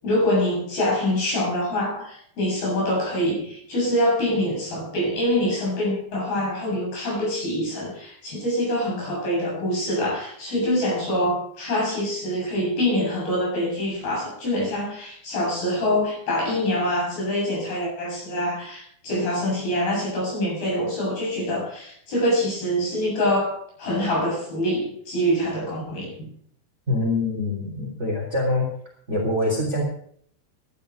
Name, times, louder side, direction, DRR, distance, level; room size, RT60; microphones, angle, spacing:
voice 1, 0.0-26.3, left 1 dB, 55° left, -2 dB, 9.6 m, -25 dB
voice 2, 26.9-28.7 29.1-29.8, left 2 dB, 15° right, 0 dB, 3.6 m, -24 dB
14.0 x 12.0 x 5.2 m, 0.63 s
omnidirectional pair, 5.0 m